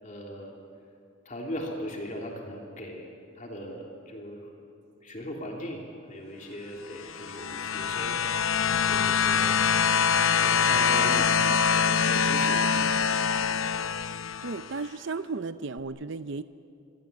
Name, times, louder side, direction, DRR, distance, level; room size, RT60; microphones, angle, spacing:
voice 1, 0.0-0.6 1.2-4.5 5.0-5.8 6.1-8.2 8.6-9.5 10.3-11.3 11.5-12.7 13.0-13.5, equal, 35° left, 1 dB, 3.1 m, -39 dB
sound 1, 7.0-14.7 15.8-15.9, left 6 dB, 75° left, 0.8 m, -24 dB
voice 2, 14.4-16.4, right 4 dB, 60° right, 13 dB, 0.6 m, -34 dB
28.0 x 22.5 x 8.4 m, 2.5 s
head